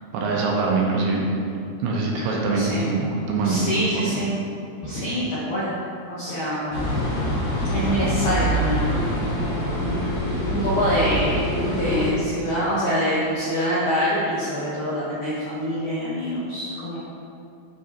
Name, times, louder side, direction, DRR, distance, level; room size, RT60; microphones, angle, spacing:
voice 1, 0.1-1.3 1.8-3.9, right 3 dB, 80° right, -2 dB, 2.5 m, -23 dB
voice 2, 2.5-2.9 3.4-4.3 4.8-5.7 6.1-6.9 7.7-9.6 10.5-17.0, equal, 80° left, -8 dB, 1.7 m, -25 dB
sound 1, 6.7-12.1, equal, 55° left, 1.2 m, -25 dB
8.8 x 5.2 x 2.7 m, 2.5 s
omnidirectional pair, 4.9 m